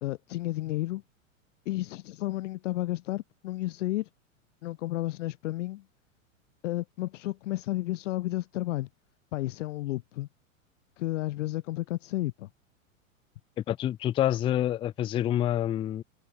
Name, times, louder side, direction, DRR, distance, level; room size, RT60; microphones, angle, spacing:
voice 1, 0.0-1.0 1.7-4.1 4.6-5.8 6.6-8.9 9.3-10.3 11.0-12.5, left 17 dB, 65° left, 0.6 m, -32 dB
voice 2, 13.7-16.0, left 12 dB, 15° left, 0.4 m, -27 dB
hypercardioid pair, 110°, 41 cm